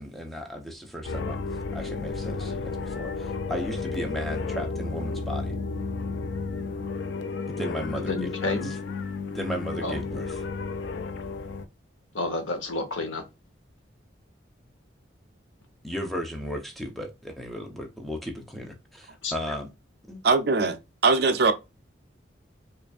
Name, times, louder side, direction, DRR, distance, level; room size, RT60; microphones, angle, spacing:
voice 1, 0.0-1.4 1.7-5.5 7.5-8.8 9.3-10.4 15.8-19.7 20.1-20.2, equal, ahead, 0.6 m, -35 dB
sound 1, 1.0-11.7, left 4 dB, 65° left, 0.4 m, -32 dB
voice 2, 8.0-8.7 9.8-10.0 12.1-13.2 19.2-19.3, left 2 dB, 85° left, 0.9 m, -30 dB
voice 3, 20.2-20.8 21.0-21.5, right 3 dB, 55° right, 0.5 m, -20 dB
4.9 x 2.5 x 2.3 m
head